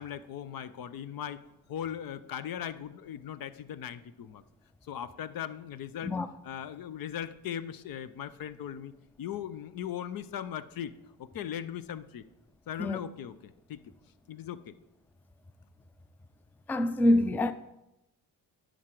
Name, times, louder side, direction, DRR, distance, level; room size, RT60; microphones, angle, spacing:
voice 1, 0.0-4.4 4.8-6.2 6.4-10.9 11.2-12.3 12.7-13.9 14.3-14.8, left 9 dB, 55° left, 0.6 m, -39 dB
voice 2, 16.7-17.5, left 1 dB, 5° left, 0.4 m, -25 dB
11.0 x 5.1 x 4.5 m
supercardioid pair, 60°, 42 cm